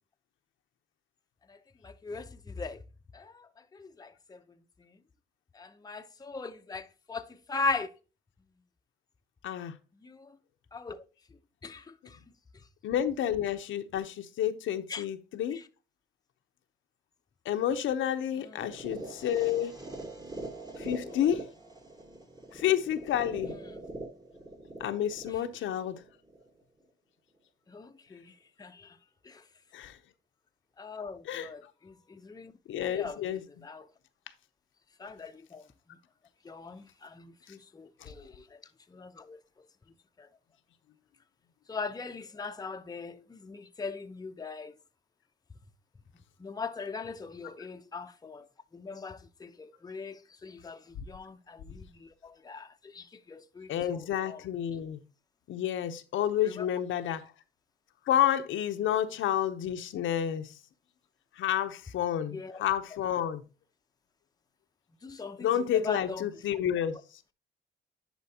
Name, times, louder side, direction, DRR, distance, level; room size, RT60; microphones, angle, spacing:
voice 1, 1.8-2.2 2.6-2.8 3.1-3.2 3.8-4.1 5.6-7.2 7.5-7.9 10.7-11.0 11.6-11.8 14.9-15.0 27.7-28.2 28.6-28.7 30.8-31.6 32.1-32.5 32.9-33.2 33.6-33.8 35.0-35.6 36.5-36.8 37.2-38.2 39.0-39.4 41.7-44.7 46.4-48.4 48.7-50.1 50.4-50.8 51.1-51.8 52.2-52.7 52.9-53.0 53.3-54.0 54.3-54.4 62.3-62.5 65.0-65.4 65.8-66.2, left 4 dB, 20° left, 0.7 m, -38 dB
voice 2, 9.4-9.7 12.8-15.6 17.4-19.8 20.8-21.4 22.5-23.6 24.8-26.0 29.7-30.0 31.2-31.5 32.7-33.5 38.0-38.1 51.0-51.1 53.7-55.0 55.5-57.2 58.1-60.6 61.4-63.4 65.4-67.0, left 10 dB, 80° left, 0.8 m, -30 dB
sound 1, 18.6-26.6, right 1 dB, 20° right, 1.6 m, -43 dB
10.5 x 4.5 x 2.8 m
cardioid pair, 90°, 20 cm